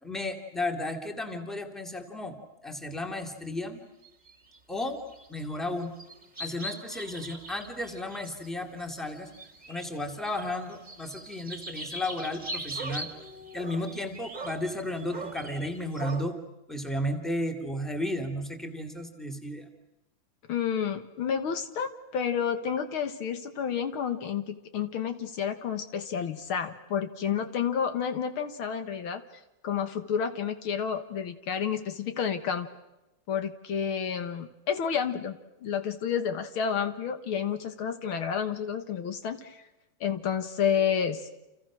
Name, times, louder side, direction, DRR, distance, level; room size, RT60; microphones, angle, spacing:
voice 1, 0.0-2.4 2.6-3.8 4.7-5.0 5.3-5.9 6.4-9.3 9.7-13.1 13.5-16.4 16.7-19.7, left 1 dB, ahead, 4 dB, 2.6 m, -33 dB
sound 1, 4.0-5.6 5.8-10.0 10.2-16.2, right 2 dB, 20° right, 2.2 m, -41 dB
voice 2, 20.5-29.2 29.6-32.7 33.3-39.6 40.0-41.3, left 7 dB, 75° left, 9 dB, 2.2 m, -30 dB
30.0 x 28.5 x 6.3 m, 0.95 s
omnidirectional pair, 2.3 m